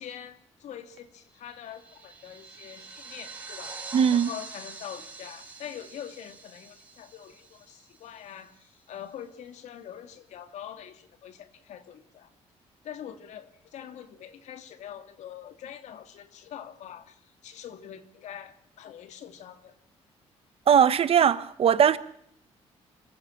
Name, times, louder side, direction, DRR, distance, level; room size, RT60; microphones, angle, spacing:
voice 1, 0.0-12.3 12.8-19.7, left 9 dB, 80° left, 2.5 m, -44 dB
sound 1, 1.4-8.3, right 4 dB, 15° right, 6.0 m, -45 dB
voice 2, 3.9-4.3 20.7-22.0, right 8 dB, 55° right, 1.2 m, -20 dB
25.5 x 16.0 x 7.3 m
cardioid pair, 105°, 12 cm